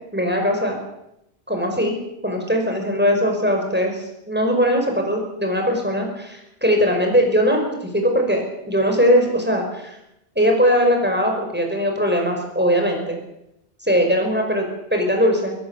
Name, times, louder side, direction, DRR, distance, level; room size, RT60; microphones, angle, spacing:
voice 1, 0.1-0.8 1.5-2.0 2.2-10.0 10.4-13.2 13.8-14.7 14.9-15.6, equal, 10° right, 2 dB, 5.3 m, -20 dB
25.0 x 16.0 x 7.2 m, 0.86 s
omnidirectional pair, 1.1 m